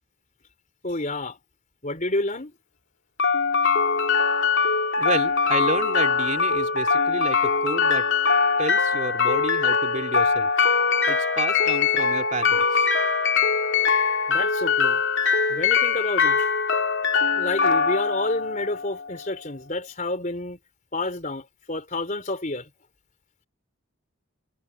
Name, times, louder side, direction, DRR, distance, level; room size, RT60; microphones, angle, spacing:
voice 1, 0.8-1.4 1.8-2.5 14.3-15.0 15.5-16.5 17.3-20.6 20.9-22.7, left 2 dB, 35° left, 4.0 m, -29 dB
sound 1, 3.2-19.2, left 5 dB, 65° left, 2.5 m, -22 dB
voice 2, 5.0-8.1 8.6-10.5 11.1-12.8, right 2 dB, 35° right, 3.3 m, -30 dB
head